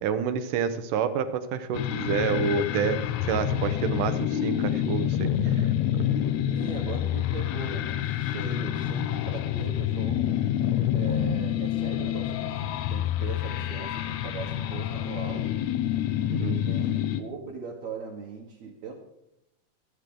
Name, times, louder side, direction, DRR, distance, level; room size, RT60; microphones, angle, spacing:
voice 1, 0.0-5.7 5.9-6.1 16.3-16.6, right 6 dB, 85° right, 10 dB, 2.6 m, -28 dB
sound 1, 1.7-17.2, left 11 dB, 75° left, 1.9 m, -27 dB
voice 2, 6.5-10.3 10.9-15.5 16.1-19.0, right 5 dB, 65° right, -1 dB, 2.5 m, -40 dB
22.0 x 9.2 x 3.8 m, 0.83 s
omnidirectional pair, 3.6 m